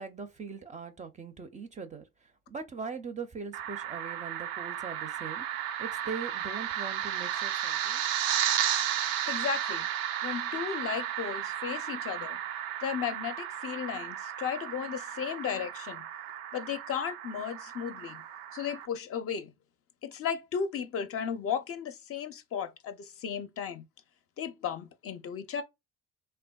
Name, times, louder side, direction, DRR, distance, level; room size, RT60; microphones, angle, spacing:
voice 1, 0.0-2.1 2.5-8.0, right 5 dB, 25° right, 0.4 m, -41 dB
sound 1, 3.5-18.9, right 10 dB, 80° right, 0.5 m, -34 dB
voice 2, 9.3-9.9 10.2-12.4 12.8-16.1 16.5-18.2 18.5-19.5 20.0-23.9 24.4-25.6, left 7 dB, 45° left, 0.5 m, -35 dB
3.4 x 2.2 x 2.2 m
supercardioid pair, 90°, 33 cm